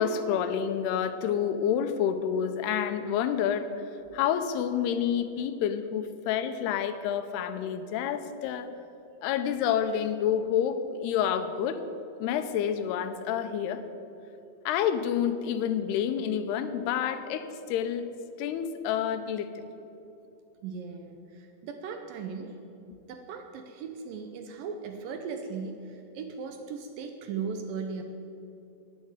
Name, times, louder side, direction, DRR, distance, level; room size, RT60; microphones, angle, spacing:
voice 1, 0.0-3.7 4.1-8.7 9.2-11.8 12.2-13.8 14.7-18.1 18.4-19.7, left 8 dB, 85° left, 10 dB, 2.8 m, -28 dB
voice 2, 20.6-22.5 22.8-28.0, right 5 dB, 75° right, 6 dB, 2.2 m, -38 dB
10.5 x 9.4 x 9.6 m, 2.8 s
omnidirectional pair, 4.6 m